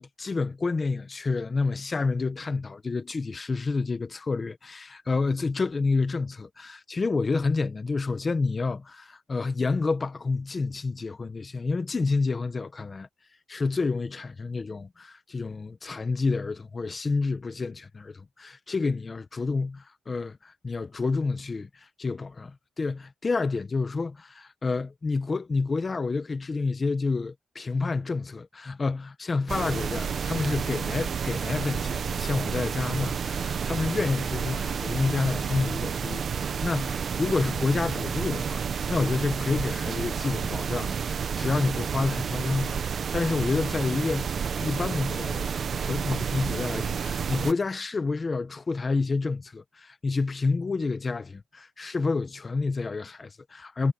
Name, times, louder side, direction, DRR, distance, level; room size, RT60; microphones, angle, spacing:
voice 1, 0.0-13.1 13.5-38.6 38.9-53.9, left 4 dB, 25° left, 1.1 m, -29 dB
sound 1, 29.5-47.5, right 7 dB, 50° right, 1.0 m, -30 dB
cardioid pair, 140°, 0 cm